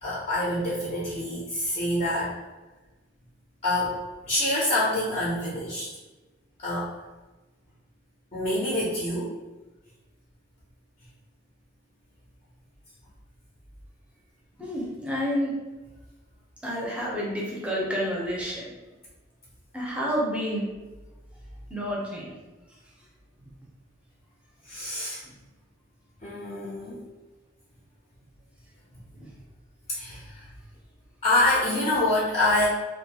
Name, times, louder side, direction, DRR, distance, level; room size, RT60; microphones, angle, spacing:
voice 1, 0.0-2.4 3.6-5.9 6.6-6.9 8.3-9.3 24.6-25.2 26.2-27.0 29.9-30.5 31.2-32.7, left 1 dB, 35° left, -7 dB, 0.6 m, -26 dB
voice 2, 14.6-15.5 16.6-18.7 19.7-20.6 21.7-22.2, equal, 5° right, -5 dB, 0.6 m, -29 dB
2.5 x 2.2 x 2.8 m, 1.2 s
head